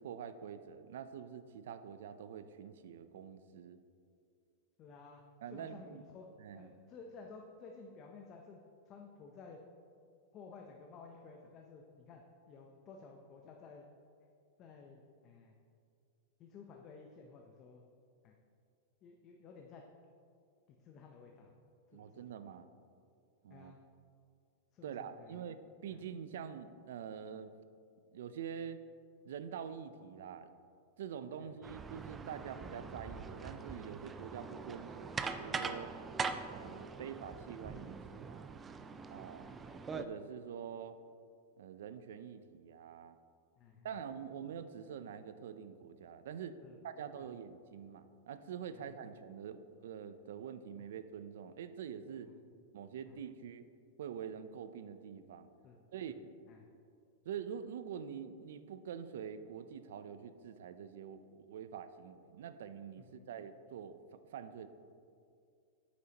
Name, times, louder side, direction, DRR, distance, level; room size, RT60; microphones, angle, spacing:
voice 1, 0.0-3.8 5.4-6.0 6.4-6.7 21.9-22.7 23.4-23.7 24.8-27.5 28.1-28.8 29.2-30.5 31.0-35.1 35.4-35.9 36.5-38.6 39.1-39.5 39.9-41.0 41.6-43.2 43.8-52.3 52.7-53.7 54.0-55.5 55.9-56.1 57.3-64.7, right 8 dB, 75° right, 12 dB, 0.5 m, -46 dB
voice 2, 4.8-5.2 5.5-6.3 6.5-8.6 8.9-9.6 10.3-13.9 14.6-15.5 16.4-17.8 18.2-18.3 19.0-19.8 20.7-21.5 21.9-22.3 23.5-23.8 24.7-25.4 25.9-26.0 31.4-31.5 39.4-39.8 43.6-43.9 46.6-46.8 48.7-48.9 52.2-52.3 53.1-53.2 55.6-55.8 56.1-56.2 56.5-56.6 63.0-63.3, left 4 dB, 30° left, 2 dB, 0.6 m, -54 dB
sound 1, 31.6-40.0, right 5 dB, 15° right, 0.3 m, -43 dB
9.4 x 8.4 x 2.9 m, 2.4 s
supercardioid pair, 150°, 0 cm